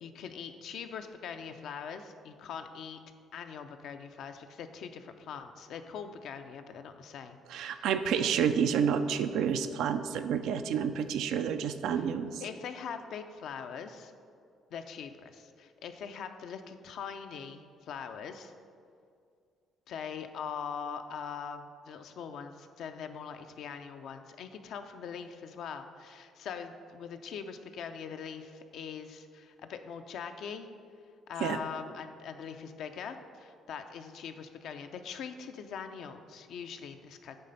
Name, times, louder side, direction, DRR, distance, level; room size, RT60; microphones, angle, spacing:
voice 1, 0.0-3.0 3.3-7.4 7.6-7.9 11.9-12.0 12.4-14.1 14.7-18.5 19.9-30.7 31.3-37.4, left 7 dB, 70° left, 7 dB, 0.5 m, -42 dB
voice 2, 7.5-12.4 31.4-31.6, right 7 dB, 75° right, 9 dB, 0.4 m, -29 dB
9.0 x 3.3 x 5.6 m, 2.3 s
supercardioid pair, 65°, 0 cm